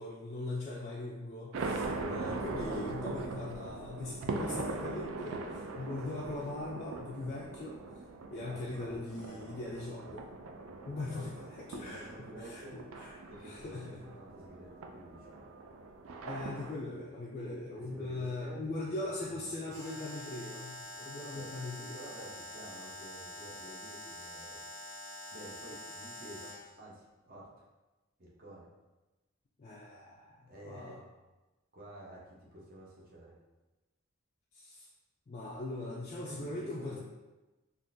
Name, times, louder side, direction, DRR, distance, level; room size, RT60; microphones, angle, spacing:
voice 1, 0.0-7.8 8.3-10.3 10.8-11.3 11.6-14.0 16.2-22.0 29.6-31.0 34.5-34.9 35.3-37.0, left 2 dB, 35° left, -5 dB, 0.3 m, -40 dB
sound 1, 1.5-16.8, right 3 dB, 70° right, 0.3 m, -41 dB
voice 2, 8.4-10.1 11.0-11.4 11.8-12.8 13.3-15.5 17.7-19.7 21.3-21.5 21.9-24.6 25.3-27.7 28.2-28.7 30.5-31.1 31.7-33.4 36.2-37.0, right 1 dB, 45° right, -4 dB, 0.8 m, -51 dB
Alarm, 19.7-26.7, left 1 dB, 15° right, 1.0 m, -46 dB
3.6 x 2.5 x 2.6 m, 1.1 s
head